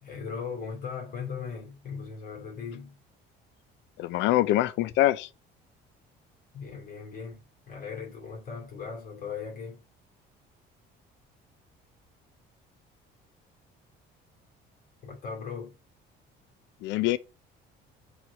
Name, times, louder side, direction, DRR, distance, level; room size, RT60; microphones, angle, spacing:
voice 1, 0.0-3.0 6.5-7.4 7.7-9.8 15.0-15.8, left 6 dB, 45° left, 2.3 m, -38 dB
voice 2, 4.0-5.3 16.8-17.2, left 15 dB, 70° left, 0.4 m, -24 dB
6.2 x 3.2 x 4.7 m
cardioid pair, 145°, 20 cm